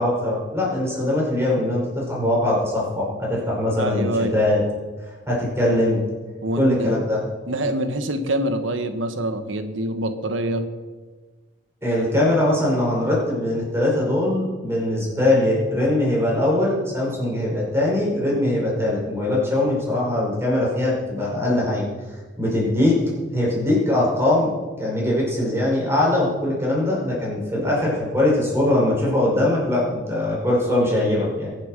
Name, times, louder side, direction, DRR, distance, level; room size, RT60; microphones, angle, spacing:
voice 1, 0.0-4.6 5.0-6.0 6.6-7.2 11.8-21.9 22.4-23.0 23.3-31.5, left 1 dB, 15° right, -4 dB, 5.5 m, -21 dB
voice 2, 3.8-4.4 6.4-7.0 7.5-10.6, right 1 dB, 80° right, 9 dB, 1.4 m, -25 dB
22.0 x 7.6 x 6.6 m, 1.3 s
head